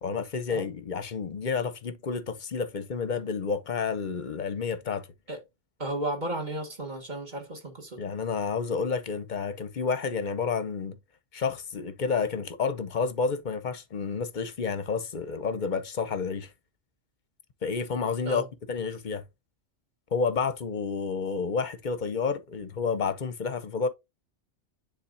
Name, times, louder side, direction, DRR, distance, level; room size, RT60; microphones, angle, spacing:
voice 1, 0.0-5.1 8.0-11.0 11.3-16.5 17.6-19.2 20.1-23.9, left 5 dB, 45° left, 0.8 m, -30 dB
voice 2, 5.8-8.0 18.2-18.5, right 1 dB, 40° right, 1.8 m, -34 dB
9.8 x 3.7 x 2.5 m
omnidirectional pair, 1.3 m